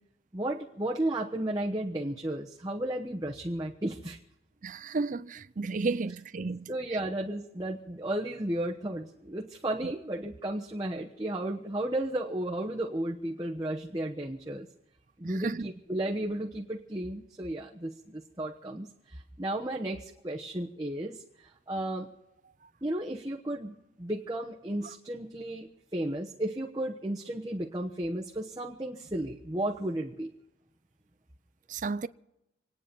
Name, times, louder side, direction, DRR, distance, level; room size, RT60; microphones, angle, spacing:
voice 1, 0.3-4.2 6.7-14.7 15.2-21.2 21.7-22.1 22.8-30.3, right 1 dB, 20° right, 1.1 m, -34 dB
voice 2, 4.6-6.7 9.8-9.9 15.2-15.7 31.7-32.1, right 3 dB, 40° right, 0.5 m, -33 dB
27.5 x 9.6 x 5.3 m
head